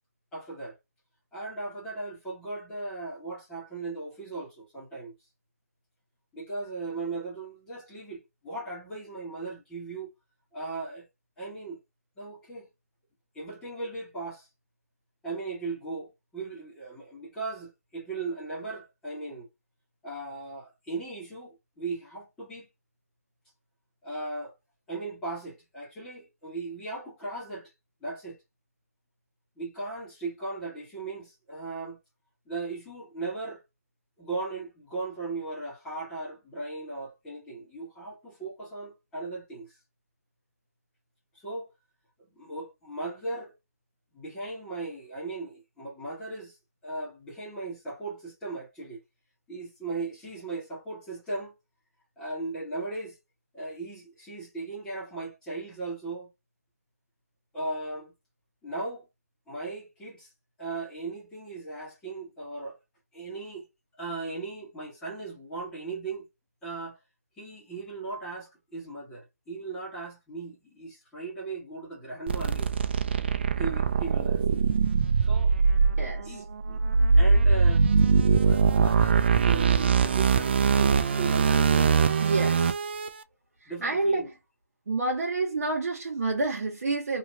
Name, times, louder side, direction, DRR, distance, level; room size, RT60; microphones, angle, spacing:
voice 1, 0.3-0.8 1.3-5.1 6.3-10.1 10.5-11.1 11.4-11.8 12.2-12.7 13.3-14.5 15.2-19.5 20.0-22.7 24.0-24.5 24.9-27.7 28.0-28.4 29.6-32.0 32.4-33.6 34.2-39.8 41.3-41.7 42.3-43.5 44.1-46.6 46.8-49.0 49.5-51.5 52.2-53.2 53.5-56.3 57.5-58.1 58.6-59.1 59.5-60.3 60.6-62.8 63.1-63.7 64.0-66.3 66.6-67.0 67.4-73.0 73.6-74.4 75.2-75.5 76.2-76.8 77.2-77.9 78.4-82.2 83.7-84.3, right 3 dB, 5° left, 1.3 m, -37 dB
sound 1, 72.3-83.1, right 5 dB, 40° right, 0.4 m, -22 dB
voice 2, 76.0-76.4 82.2-82.7 83.6-84.3 84.9-87.2, right 3 dB, 70° right, 1.3 m, -29 dB
2.9 x 2.8 x 2.6 m
hypercardioid pair, 160°, 9 cm